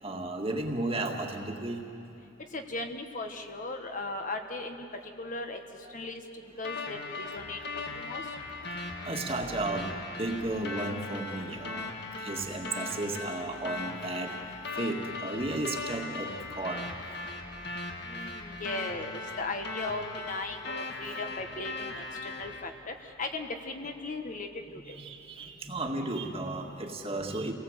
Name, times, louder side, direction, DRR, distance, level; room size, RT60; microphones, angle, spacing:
voice 1, 0.0-1.8 5.8-5.9 9.0-11.9 12.2-14.4 14.7-16.9 24.9-27.5, right 2 dB, 30° right, 2 dB, 2.0 m, -34 dB
voice 2, 2.5-4.8 5.2-5.6 5.9-8.2 18.1-24.5 24.9-25.0, left 2 dB, 40° left, 5 dB, 1.5 m, -37 dB
sound 1, 6.6-22.6, left 3 dB, 55° left, 1.9 m, -39 dB
29.0 x 18.5 x 8.1 m, 2.8 s
head